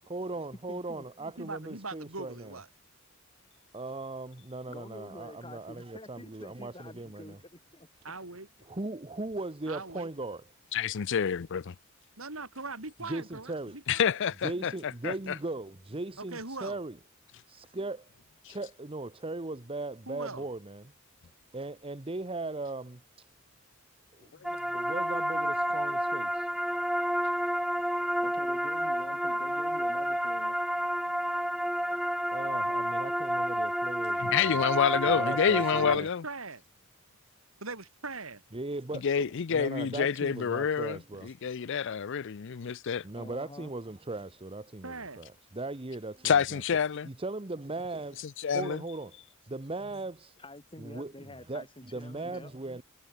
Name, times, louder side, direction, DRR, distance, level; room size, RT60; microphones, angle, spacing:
voice 1, 0.1-2.6 3.7-7.4 8.7-10.5 13.0-13.8 14.4-17.0 17.5-18.1 18.5-20.9 21.5-23.3 24.2-26.5 32.3-34.6 35.0-36.1 38.5-41.3 43.0-46.6 47.0-48.3 48.5-49.2 49.4-50.4 50.8-52.8, right 2 dB, 25° right, 1.0 m, -38 dB
voice 2, 0.7-1.3 4.7-7.9 28.2-30.6 43.1-43.7 50.4-52.5, left 1 dB, 25° left, 3.7 m, -48 dB
voice 3, 1.4-2.7 8.0-8.5 9.7-10.1 12.2-14.2 16.2-16.8 20.1-20.5 35.4-36.6 37.6-38.4 44.8-45.2, right 3 dB, 80° right, 5.9 m, -41 dB
voice 4, 10.7-11.7 13.9-15.4 18.5-18.6 24.7-24.8 34.2-36.2 39.0-43.0 46.2-47.1 48.4-48.8, left 7 dB, 60° left, 0.5 m, -28 dB
sound 1, 24.4-36.0, equal, ahead, 0.8 m, -30 dB
head